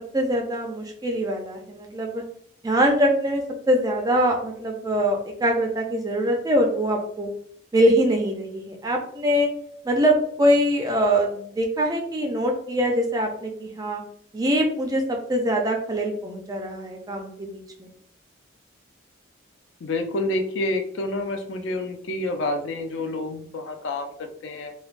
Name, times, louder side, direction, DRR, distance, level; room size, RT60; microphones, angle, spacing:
voice 1, 0.1-2.2 2.6-7.3 7.7-9.5 9.8-14.0 14.3-17.9, equal, 20° right, 2 dB, 0.3 m, -23 dB
voice 2, 19.8-24.7, left 2 dB, 65° left, 5 dB, 0.4 m, -28 dB
3.1 x 2.2 x 2.4 m, 0.66 s
head